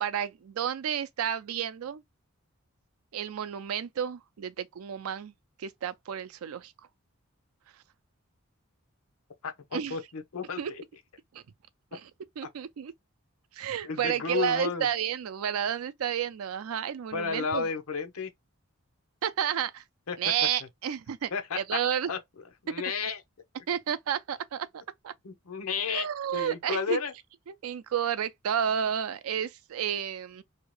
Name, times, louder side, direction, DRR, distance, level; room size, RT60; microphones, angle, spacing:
voice 1, 0.0-2.0 3.1-5.3 5.6-6.7 9.7-10.0 10.6-10.7 11.3-11.4 11.9-12.0 12.4-12.9 13.5-17.7 19.2-19.8 20.2-22.1 23.7-24.7 25.0-25.1 25.9-27.0 27.5-30.4, right 9 dB, 85° right, 0.4 m, -31 dB
voice 2, 9.4-10.8 13.8-14.9 17.1-18.3 20.1-20.2 21.3-21.8 22.1-22.2 22.6-23.2 25.2-27.1, left 5 dB, 90° left, 0.7 m, -32 dB
2.8 x 2.2 x 3.0 m
head